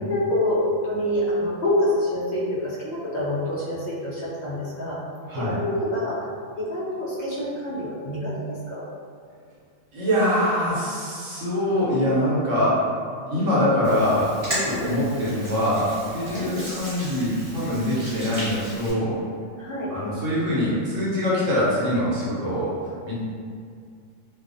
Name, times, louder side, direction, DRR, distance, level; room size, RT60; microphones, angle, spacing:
voice 1, 0.0-5.0 5.3-6.2 6.6-8.9 14.7-15.0 16.3-16.6 19.6-19.9, left 1 dB, 50° left, -8 dB, 0.6 m, -26 dB
voice 2, 5.3-5.6 9.9-12.8 13.2-19.2 19.9-22.7 23.0-23.2, left 1 dB, 70° right, -9 dB, 1.1 m, -23 dB
Hands, 13.8-18.9, equal, 30° right, 0.7 m, -35 dB
2.6 x 2.0 x 2.5 m, 2.2 s
omnidirectional pair, 1.4 m